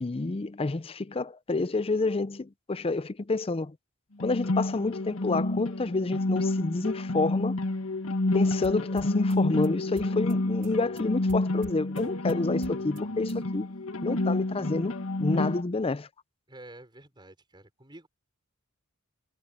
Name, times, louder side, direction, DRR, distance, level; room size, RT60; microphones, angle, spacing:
voice 1, 0.0-3.8 4.2-7.6 8.3-13.7 14.0-14.9 15.2-16.1, left 3 dB, 25° left, 0.5 m, -29 dB
sound 1, 4.2-15.6, left 2 dB, 85° left, 1.6 m, -29 dB
sound 2, 8.3-13.5, right 1 dB, 40° right, 3.9 m, -51 dB
voice 2, 16.5-18.1, right 1 dB, 20° right, 5.4 m, -49 dB
head